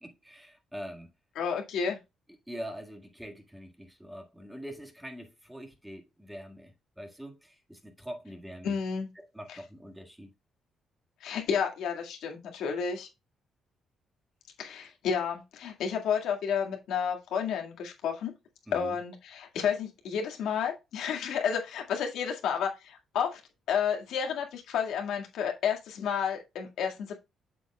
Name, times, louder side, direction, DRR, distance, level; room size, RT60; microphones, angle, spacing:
voice 1, 0.0-1.1 2.5-8.7 9.1-10.3 18.7-19.0, equal, 5° right, 1.6 m, -44 dB
voice 2, 1.4-2.0 8.6-9.1 9.5-9.6 11.2-13.1 14.6-18.3 18.7-23.4 23.7-27.1, left 7 dB, 80° left, 1.9 m, -31 dB
7.8 x 7.1 x 2.2 m
cardioid pair, 90°, 0 cm